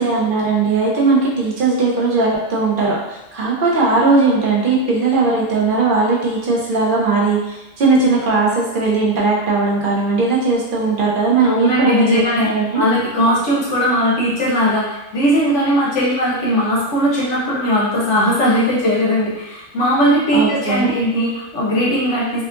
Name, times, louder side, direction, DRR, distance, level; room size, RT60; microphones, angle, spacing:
voice 1, 0.0-12.8 20.3-21.0, right 3 dB, 60° right, -4 dB, 0.6 m, -18 dB
voice 2, 11.4-12.5 12.7-22.4, equal, 65° left, -6 dB, 0.9 m, -18 dB
2.7 x 2.3 x 2.4 m, 0.98 s
omnidirectional pair, 1.4 m